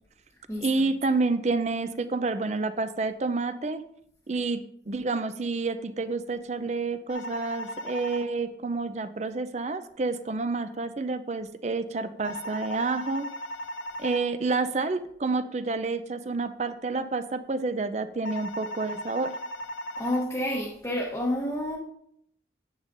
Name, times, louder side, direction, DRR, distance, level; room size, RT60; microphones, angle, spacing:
voice 1, 0.6-3.8 4.3-13.3 14.0-19.3, right 3 dB, 35° right, 11 dB, 0.5 m, -29 dB
sound 1, 7.1-8.2 12.2-14.2 18.2-20.2, equal, 85° left, 0.7 m, -37 dB
voice 2, 20.0-21.8, left 1 dB, 15° left, -5 dB, 1.0 m, -29 dB
9.5 x 9.0 x 2.6 m, 0.72 s
head